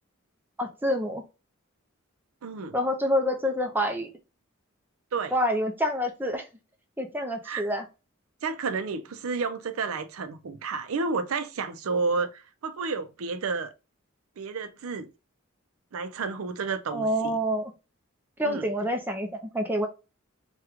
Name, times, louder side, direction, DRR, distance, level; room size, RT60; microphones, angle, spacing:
voice 1, 0.6-1.2 2.7-4.1 5.3-6.5 7.0-7.8 16.9-17.7 18.4-19.9, equal, 10° right, 0.4 m, -27 dB
voice 2, 2.4-2.8 5.1-5.3 7.4-7.7 8.4-13.7 14.4-15.1 15.9-17.4 18.4-18.7, right 4 dB, 80° right, 0.5 m, -31 dB
3.5 x 2.3 x 2.8 m
head